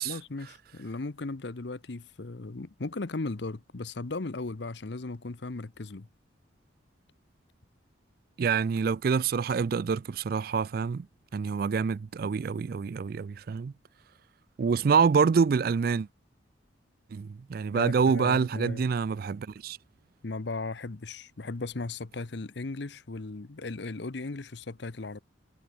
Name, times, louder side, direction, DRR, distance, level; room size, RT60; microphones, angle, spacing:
voice 1, 0.0-6.1 17.7-18.8 20.2-25.2, left 3 dB, 60° left, 0.8 m, -37 dB
voice 2, 8.4-11.1 11.3-13.7 14.6-16.1 17.1-19.8, right 5 dB, 50° right, 0.3 m, -26 dB
head